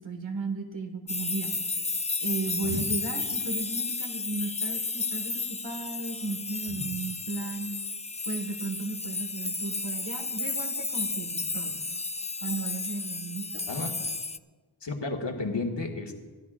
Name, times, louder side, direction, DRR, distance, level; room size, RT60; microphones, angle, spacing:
voice 1, 0.0-1.5 2.2-7.7 8.2-11.8 12.4-13.6, right 3 dB, 80° right, 3 dB, 1.7 m, -35 dB
sound 1, 1.1-14.4, left 3 dB, 15° left, 0.3 m, -33 dB
voice 2, 14.8-16.1, left 3 dB, 70° left, 1 dB, 1.9 m, -32 dB
27.0 x 13.0 x 2.5 m, 1.3 s
wide cardioid pair, 70°, 44 cm